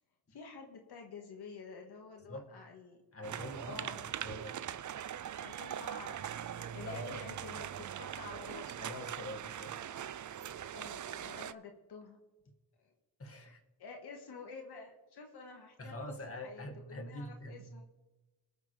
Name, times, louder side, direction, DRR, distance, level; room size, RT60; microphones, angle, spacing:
voice 1, 0.3-3.0 3.6-4.0 5.4-6.2 6.5-8.9 10.7-12.2 12.8-12.9 13.4-13.5 13.8-16.1 16.4-17.8, left 4 dB, 90° left, 2 dB, 1.7 m, -50 dB
voice 2, 3.1-4.6 5.2-5.4 6.9-7.2 8.8-9.8 13.2-13.6 15.8-17.7, left 1 dB, 35° left, 3 dB, 1.9 m, -45 dB
sound 1, 3.2-11.5, right 10 dB, 50° right, 0.5 m, -42 dB
20.0 x 7.3 x 3.3 m, 1.1 s
cardioid pair, 65°, 38 cm